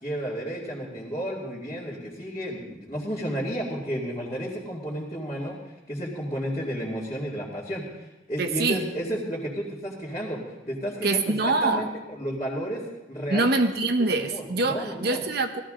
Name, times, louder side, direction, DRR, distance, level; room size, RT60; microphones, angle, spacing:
voice 1, 0.0-5.5 5.9-10.4 10.7-11.3 11.6-12.8 13.1-13.5 14.2-15.2, equal, 25° left, -8 dB, 2.4 m, -32 dB
voice 2, 8.4-8.8 11.0-11.9 13.3-15.6, right 3 dB, 55° right, 7 dB, 1.0 m, -24 dB
17.0 x 14.0 x 3.8 m, 1.0 s
head